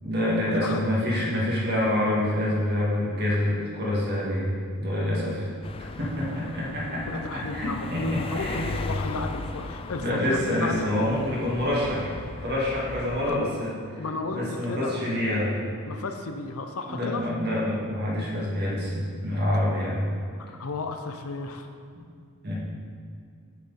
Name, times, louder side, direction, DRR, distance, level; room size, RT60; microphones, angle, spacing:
voice 1, 0.0-5.5 6.0-8.7 10.0-12.2 12.4-13.7 14.3-15.5 16.9-20.1 22.4-22.6, left 1 dB, 50° right, -6 dB, 2.0 m, -27 dB
sound 1, 5.6-13.3, left 3 dB, 25° left, 0.3 m, -36 dB
voice 2, 6.1-10.9 13.3-13.5 14.0-14.4 14.7-15.0 15.9-17.3 20.4-21.7, left 3 dB, 80° left, 6 dB, 0.6 m, -34 dB
8.5 x 6.0 x 4.1 m, 2.3 s
head